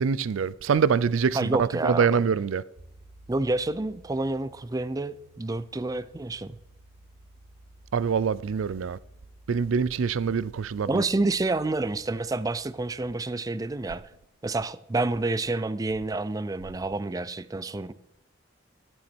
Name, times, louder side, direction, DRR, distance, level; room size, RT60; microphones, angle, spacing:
voice 1, 0.0-2.6 7.9-9.0 9.5-11.0, right 6 dB, 80° right, 0.4 m, -25 dB
voice 2, 1.3-2.2 3.3-6.6 10.9-14.0 14.4-17.9, right 2 dB, 20° right, 0.4 m, -28 dB
sound 1, 2.8-13.0, right 1 dB, 55° right, 1.7 m, -54 dB
11.5 x 7.1 x 4.4 m
head